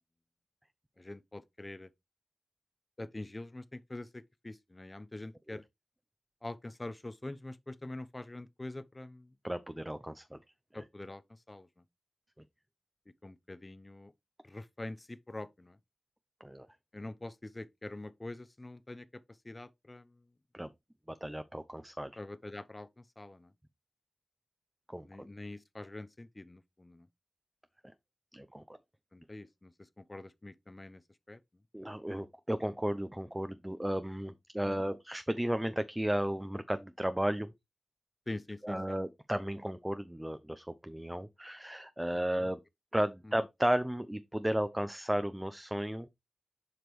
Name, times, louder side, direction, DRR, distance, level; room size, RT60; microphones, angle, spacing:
voice 1, 1.0-1.9 3.0-5.6 6.4-9.3 10.7-11.8 13.2-14.1 14.4-15.8 16.9-20.2 22.2-23.5 25.0-27.1 29.1-31.0 31.3-31.4 34.6-34.9 38.3-39.0 42.3-42.5 43.2-43.3, left 2 dB, 30° left, 0.7 m, -45 dB
voice 2, 9.4-10.4 10.7-10.8 16.4-16.7 20.5-20.7 21.1-22.1 24.9-25.3 28.3-28.6 31.7-37.5 38.6-42.6 42.9-46.1, right 1 dB, 10° right, 0.6 m, -34 dB
7.8 x 5.1 x 3.1 m
cardioid pair, 40°, 0 cm